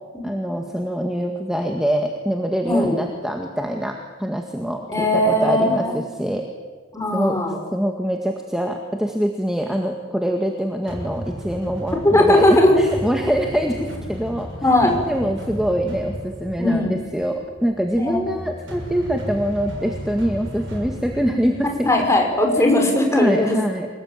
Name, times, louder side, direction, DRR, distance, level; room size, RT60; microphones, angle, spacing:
voice 1, 0.2-6.5 7.1-7.4 7.7-14.5 15.1-21.9 23.1-23.9, equal, 5° right, 2 dB, 1.9 m, -24 dB
voice 2, 2.6-3.0 4.9-5.9 6.9-7.6 12.0-12.8 14.6-15.0 16.6-17.0 18.0-18.2 21.8-23.6, left 1 dB, 15° left, 2 dB, 5.5 m, -18 dB
sound 1, 10.9-22.8, equal, 65° right, 7.0 m, -34 dB
27.0 x 19.5 x 9.1 m, 1.4 s
head